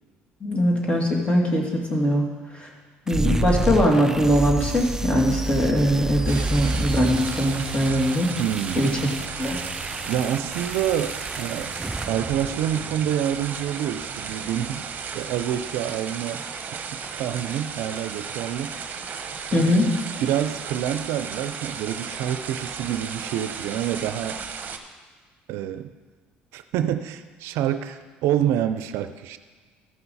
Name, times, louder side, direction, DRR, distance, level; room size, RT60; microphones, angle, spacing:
voice 1, 0.4-2.3 2.5-2.7 3.1-8.3 8.8-9.1 9.4-9.6 19.5-19.9, equal, 25° left, 0 dB, 2.3 m, -21 dB
sound 1, 3.1-13.0, right 2 dB, 10° right, 0.5 m, -30 dB
sound 2, 6.3-24.8, right 6 dB, 45° right, 0.9 m, -34 dB
voice 2, 8.4-8.9 10.1-11.8 12.1-14.9 15.1-16.4 16.9-18.7 19.5-19.9 20.2-24.4 25.5-25.9 26.5-29.4, right 10 dB, 75° right, 10 dB, 0.5 m, -27 dB
14.0 x 5.7 x 4.1 m, 1.4 s
supercardioid pair, 75°, 4 cm